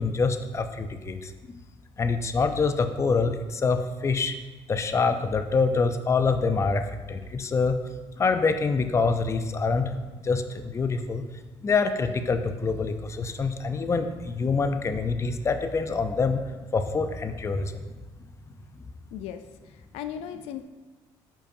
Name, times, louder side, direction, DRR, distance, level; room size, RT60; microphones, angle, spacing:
voice 1, 0.0-1.3 2.0-4.3 4.7-7.8 8.2-10.0 10.2-11.2 11.6-16.4 16.7-17.8, left 4 dB, 30° left, 8 dB, 0.5 m, -25 dB
voice 2, 19.1-20.6, left 9 dB, 80° left, 9 dB, 0.4 m, -37 dB
8.6 x 5.3 x 2.6 m, 1.2 s
supercardioid pair, 85°, 10 cm